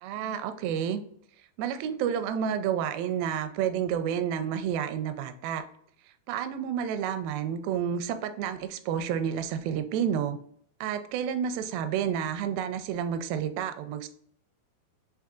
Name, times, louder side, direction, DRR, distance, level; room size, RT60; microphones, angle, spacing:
voice 1, 0.0-1.0 1.6-5.6 6.3-10.4 10.8-14.1, right 8 dB, 85° right, 9 dB, 2.3 m, -30 dB
5.4 x 3.7 x 2.3 m, 0.63 s
omnidirectional pair, 4.2 m